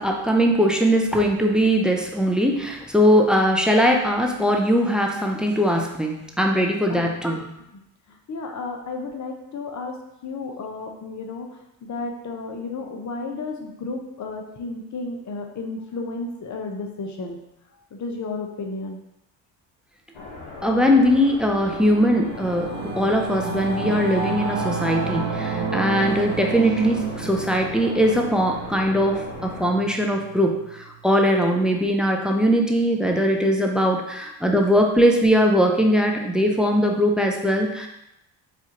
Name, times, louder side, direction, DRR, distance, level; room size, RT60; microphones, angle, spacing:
voice 1, 0.0-7.5 20.6-37.9, equal, ahead, 2 dB, 0.4 m, -20 dB
voice 2, 8.1-17.4 17.9-19.0, left 3 dB, 35° left, 2 dB, 0.8 m, -33 dB
sound 1, 20.1-29.7, left 3 dB, 70° left, 1.0 m, -38 dB
Singing / Musical instrument, 21.6-31.3, right 4 dB, 65° right, 0.8 m, -31 dB
4.2 x 2.4 x 2.9 m, 0.84 s
supercardioid pair, 60°, 49 cm